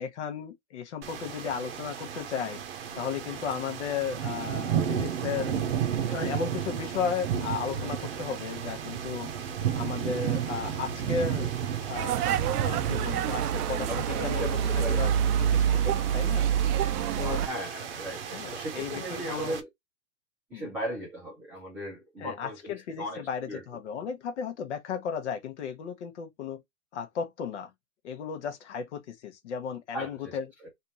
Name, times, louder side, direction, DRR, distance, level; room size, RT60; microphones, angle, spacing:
voice 1, 0.0-2.6 2.9-5.5 6.1-9.3 9.7-11.5 11.9-12.3 12.6-15.1 15.4-16.5 17.2-17.4 18.3-19.6 20.5-20.7 22.2-26.6 26.9-27.7 28.0-30.5, left 6 dB, 50° left, 1.0 m, -35 dB
sound 1, 1.0-19.6, right 8 dB, 40° right, 0.8 m, -33 dB
sound 2, 12.0-17.5, right 9 dB, 80° right, 0.6 m, -26 dB
voice 2, 13.9-15.1 17.2-19.7 20.5-23.6 29.9-30.7, equal, 5° right, 0.7 m, -37 dB
3.4 x 2.7 x 4.2 m
hypercardioid pair, 165°, 45 cm